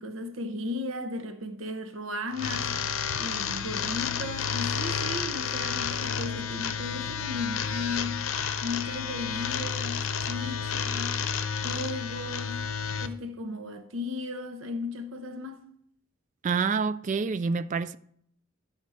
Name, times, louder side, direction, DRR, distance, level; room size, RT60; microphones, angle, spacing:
voice 1, 0.0-2.7 3.2-8.3 8.6-11.2 11.6-12.6 13.0-15.6, left 2 dB, 70° right, 0.8 m, -35 dB
sound 1, 2.3-13.1, left 7 dB, 75° left, 0.7 m, -31 dB
voice 2, 16.4-18.0, right 5 dB, 35° right, 0.3 m, -27 dB
12.0 x 5.2 x 4.2 m
head